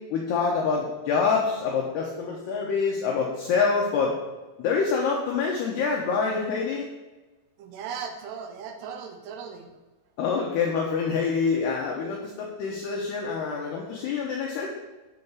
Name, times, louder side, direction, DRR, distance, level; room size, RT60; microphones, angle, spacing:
voice 1, 0.1-4.1 4.6-6.9 10.2-14.7, left 5 dB, 75° left, -1 dB, 2.6 m, -26 dB
voice 2, 7.6-9.7, right 6 dB, 75° right, 5 dB, 2.6 m, -37 dB
9.5 x 4.5 x 7.2 m, 1.2 s
omnidirectional pair, 5.8 m